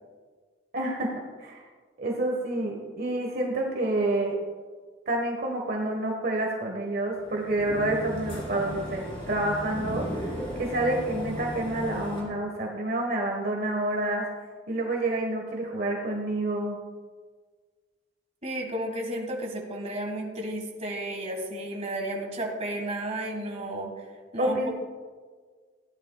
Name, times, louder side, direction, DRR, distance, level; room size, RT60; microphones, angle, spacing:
voice 1, 0.7-1.6 2.0-4.4 5.1-14.3 14.7-16.8 24.4-24.7, right 1 dB, 55° right, 0 dB, 1.3 m, -28 dB
sound 1, 7.2-12.2, equal, 30° left, 2.9 m, -36 dB
voice 2, 18.4-23.9 24.3-24.7, right 1 dB, 35° right, 1 dB, 1.7 m, -33 dB
15.5 x 10.0 x 2.3 m, 1.5 s
head